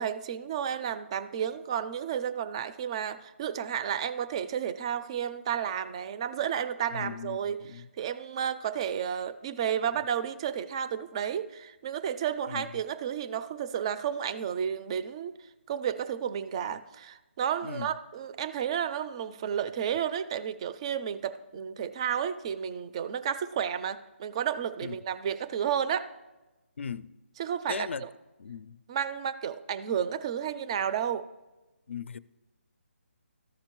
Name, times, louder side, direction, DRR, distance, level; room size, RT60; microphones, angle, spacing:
voice 1, 0.0-15.3 15.7-26.1 27.4-28.1 28.9-31.3, right 8 dB, 25° right, 13 dB, 0.4 m, -32 dB
voice 2, 6.9-7.9 12.5-12.7 17.6-17.9 24.8-25.0 26.8-27.1 27.7-28.0 28.4-28.8 31.9-32.2, left 6 dB, 65° left, 17 dB, 0.4 m, -38 dB
14.0 x 5.1 x 3.0 m, 1.1 s
figure-of-eight pair, 155°, 7 cm